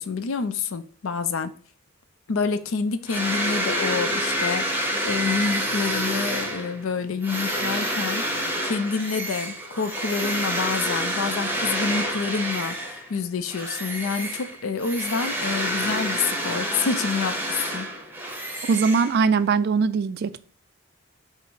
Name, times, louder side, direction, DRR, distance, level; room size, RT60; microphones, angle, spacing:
voice 1, 0.0-1.5 2.3-17.9, left 5 dB, 75° left, 0.5 m, -28 dB
sound 1, 3.1-13.1 13.5-19.5, equal, 10° right, 0.7 m, -28 dB
voice 2, 18.7-20.4, right 5 dB, 50° right, 0.3 m, -21 dB
5.6 x 2.0 x 4.6 m
head